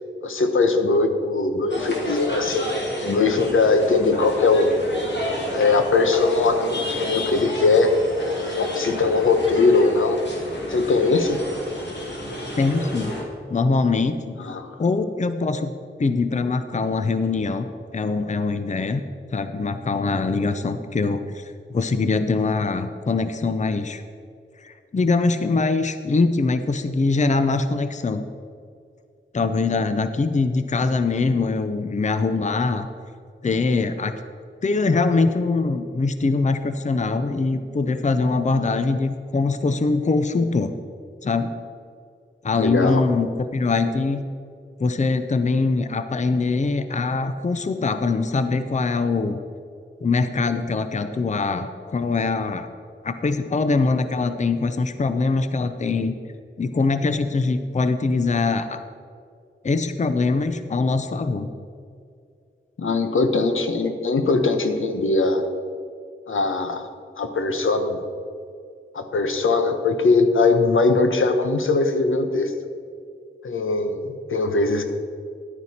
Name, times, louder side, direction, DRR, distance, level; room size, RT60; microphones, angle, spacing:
voice 1, 0.2-2.7 3.0-4.8 5.5-8.0 8.5-10.2 10.7-11.4 14.4-14.7 42.6-43.0 62.8-65.4 66.3-66.9 67.2-68.0 68.9-72.5 73.4-74.8, left 3 dB, 85° left, 6 dB, 0.9 m, -20 dB
sound 1, 1.7-13.2, left 1 dB, 65° left, 2.2 m, -31 dB
voice 2, 12.6-13.2 13.5-14.4 14.8-15.7 16.0-17.7 17.9-19.0 19.3-24.0 24.6-28.2 29.3-32.9 33.4-34.2 34.6-40.7 41.2-41.5 42.4-44.2 44.8-49.4 50.0-52.7 53.0-56.2 56.6-58.8 59.6-61.5, left 3 dB, 35° left, 10 dB, 0.5 m, -23 dB
11.0 x 9.2 x 4.2 m, 2.3 s
wide cardioid pair, 75°, 20 cm